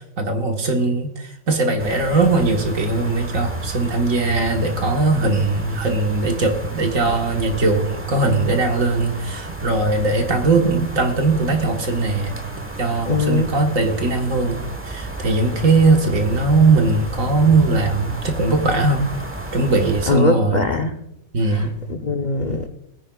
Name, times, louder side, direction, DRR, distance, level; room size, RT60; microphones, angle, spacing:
voice 1, 0.0-12.4 12.8-19.0 19.5-20.6 21.3-21.7, right 3 dB, 50° right, 3 dB, 1.6 m, -19 dB
sound 1, 1.8-20.1, right 1 dB, 10° right, 0.8 m, -32 dB
voice 2, 13.1-13.5 20.1-20.9 21.5-22.7, left 3 dB, 60° left, 4 dB, 0.4 m, -21 dB
21.0 x 9.8 x 2.3 m, 0.81 s
omnidirectional pair, 1.9 m